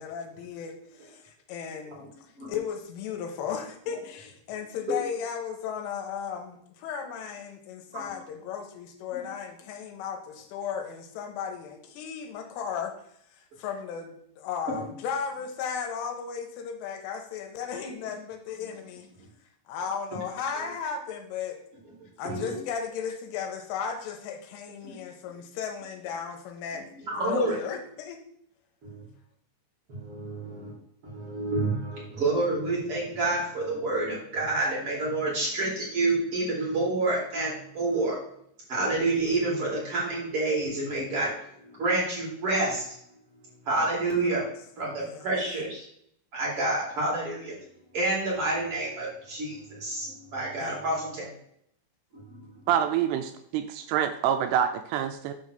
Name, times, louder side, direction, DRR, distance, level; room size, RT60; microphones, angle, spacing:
voice 1, 0.0-12.9 13.6-19.1 19.7-21.6 22.2-26.8 27.2-28.2 44.2-44.3 45.0-45.2 50.6-51.3, left 7 dB, 80° left, 4 dB, 3.4 m, -35 dB
voice 2, 26.7-27.6 28.8-29.0 29.9-30.7 31.0-38.2 38.7-41.3 41.6-42.9 43.6-44.4 44.8-45.8 46.3-47.5 47.9-51.3 52.1-52.6, right 2 dB, 35° right, -5 dB, 2.8 m, -28 dB
voice 3, 52.7-55.3, right 9 dB, 85° right, 8 dB, 3.0 m, -26 dB
8.2 x 3.5 x 6.6 m, 0.69 s
omnidirectional pair, 5.8 m